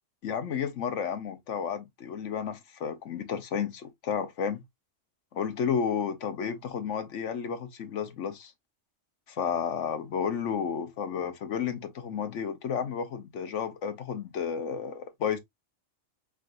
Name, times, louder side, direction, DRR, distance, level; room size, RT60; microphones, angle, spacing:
voice 1, 0.2-4.6 5.3-8.5 9.3-15.4, left 7 dB, 70° left, 1.1 m, -32 dB
4.8 x 3.2 x 2.5 m
omnidirectional pair, 1.3 m